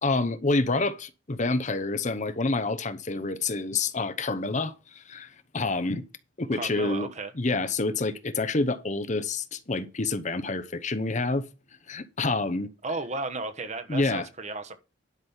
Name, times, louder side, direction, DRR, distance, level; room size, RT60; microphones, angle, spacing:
voice 1, 0.0-6.1 6.4-7.1 7.3-11.4 11.9-12.7 13.9-14.3, left 3 dB, 40° left, 0.9 m, -28 dB
voice 2, 6.5-7.3 12.8-14.8, right 3 dB, 35° right, 1.3 m, -34 dB
11.0 x 6.2 x 5.6 m
head